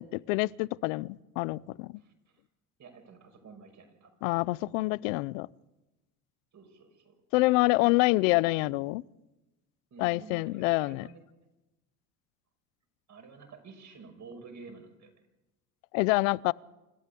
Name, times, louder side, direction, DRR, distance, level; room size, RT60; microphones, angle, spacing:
voice 1, 0.0-1.9 4.2-5.5 7.3-9.0 10.0-11.1 15.9-16.5, left 22 dB, 85° left, 0.6 m, -26 dB
voice 2, 2.8-4.1 6.5-7.1 7.8-8.0 9.9-11.2 13.1-15.1, right 4 dB, 45° right, 5.9 m, -50 dB
26.0 x 13.0 x 8.4 m
supercardioid pair, 95°, 38 cm